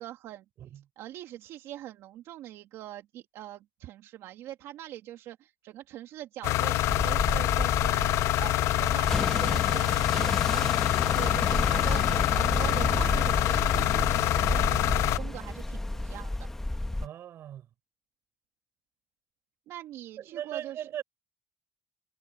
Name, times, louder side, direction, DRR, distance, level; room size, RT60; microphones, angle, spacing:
voice 1, 0.0-0.4 1.0-8.1 8.4-10.8 11.1-16.5 19.7-20.9, right 13 dB, 80° right, 2.5 m, -43 dB
sound 1, 6.4-15.2, left 16 dB, 80° left, 0.4 m, -26 dB
sound 2, 6.8-17.1, left 1 dB, 10° left, 1.1 m, -31 dB
voice 2, 17.0-17.7 20.2-21.0, right 11 dB, 55° right, 7.2 m, -39 dB
cardioid pair, 135°, 5 cm